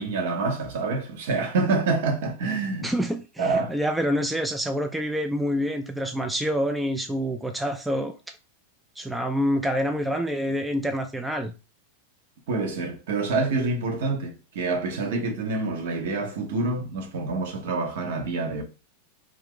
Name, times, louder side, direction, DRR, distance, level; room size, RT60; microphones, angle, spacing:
voice 1, 0.0-2.9 3.4-3.7 12.5-18.6, right 3 dB, 55° right, 0.8 m, -27 dB
voice 2, 2.8-8.1 9.0-11.5 15.1-15.2, equal, 5° right, 0.3 m, -27 dB
2.7 x 2.4 x 3.6 m
figure-of-eight pair, 90°, 0 cm